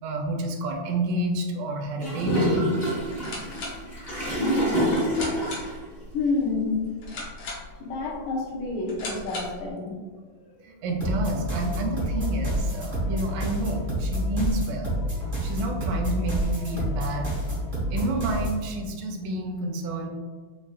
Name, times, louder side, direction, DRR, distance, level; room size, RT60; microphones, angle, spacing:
voice 1, 0.0-2.7 10.6-15.0 15.4-17.3 17.9-20.1, right 2 dB, 90° right, 3 dB, 2.2 m, -29 dB
Gurgling / Toilet flush, 2.0-5.7, equal, 45° left, 0.7 m, -26 dB
sound 1, 3.0-9.7, left 2 dB, 60° left, 1.8 m, -39 dB
voice 2, 6.1-6.8 7.8-9.9, left 3 dB, 80° left, -3 dB, 2.3 m, -28 dB
sound 2, 11.0-18.6, equal, 40° right, 0.6 m, -28 dB
6.5 x 2.6 x 2.4 m, 1.4 s
omnidirectional pair, 3.7 m